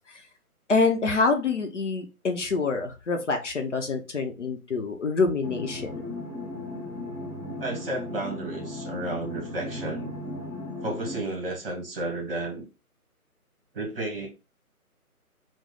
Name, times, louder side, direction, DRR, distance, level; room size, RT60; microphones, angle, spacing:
voice 1, 0.7-6.0, left 4 dB, 55° left, 4 dB, 0.6 m, -26 dB
sound 1, 5.4-11.2, left 2 dB, 10° left, 1.2 m, -36 dB
voice 2, 7.6-10.1 10.8-12.6 13.7-14.3, right 2 dB, 40° right, 0 dB, 1.0 m, -32 dB
3.0 x 2.0 x 3.7 m, 0.30 s
figure-of-eight pair, 150°, 45 cm